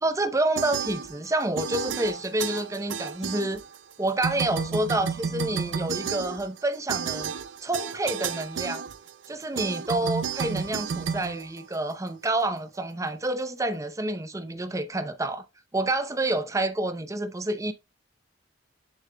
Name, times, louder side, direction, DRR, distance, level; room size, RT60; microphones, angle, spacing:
voice 1, 0.0-3.6 4.0-7.3 7.6-8.8 9.3-15.4 15.7-17.7, right 2 dB, 15° right, 0.6 m, -28 dB
sound 1, 0.6-1.3 1.6-3.9 4.2-12.1, right 6 dB, 85° right, 0.5 m, -32 dB
7.4 x 6.9 x 2.2 m
head